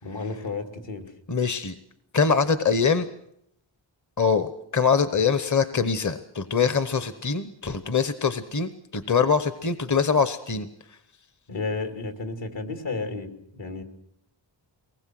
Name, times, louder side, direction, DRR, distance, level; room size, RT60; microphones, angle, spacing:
voice 1, 0.0-1.1 11.5-13.8, left 3 dB, 70° left, 6 dB, 3.0 m, -32 dB
voice 2, 1.3-1.8 2.1-3.1 4.2-10.7, left 5 dB, 40° left, 12 dB, 1.0 m, -23 dB
23.5 x 20.0 x 7.7 m, 0.74 s
wide cardioid pair, 90°, 46 cm